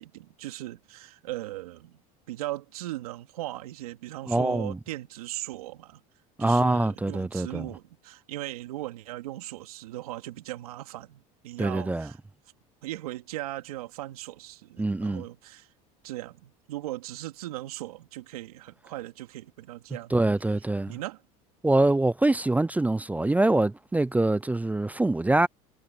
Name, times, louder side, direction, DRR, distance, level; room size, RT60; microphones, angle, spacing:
voice 1, 0.0-2.0 2.3-6.0 6.4-12.2 12.8-15.7 16.0-20.1 20.9-21.2, right 16 dB, 90° right, 2.4 m, -38 dB
voice 2, 4.3-4.8 6.4-7.7 11.6-12.1 14.8-15.2 20.1-21.0 21.6-25.5, right 2 dB, 10° right, 0.5 m, -24 dB
supercardioid pair, 95°, 19 cm